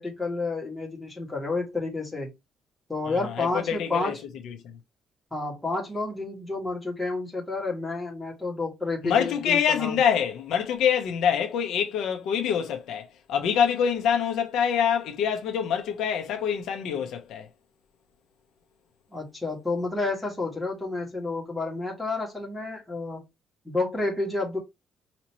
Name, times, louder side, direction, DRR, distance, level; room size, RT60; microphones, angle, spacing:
voice 1, 0.0-2.3 2.9-4.1 5.3-9.9 19.1-23.2 23.6-24.6, left 3 dB, 5° left, 1.7 m, -30 dB
voice 2, 3.0-4.2 4.4-4.8 9.0-17.5, left 8 dB, 70° left, 0.8 m, -25 dB
5.0 x 2.9 x 3.0 m
cardioid pair, 175°, 0 cm